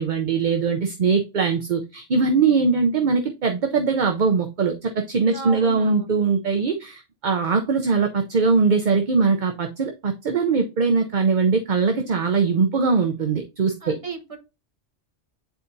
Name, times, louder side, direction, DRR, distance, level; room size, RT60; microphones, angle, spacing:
voice 1, 0.0-14.0, right 4 dB, 45° right, 5 dB, 0.7 m, -21 dB
voice 2, 5.3-6.1 13.8-14.4, right 2 dB, 30° right, 3 dB, 1.2 m, -35 dB
9.2 x 4.1 x 2.6 m, 0.28 s
omnidirectional pair, 1.2 m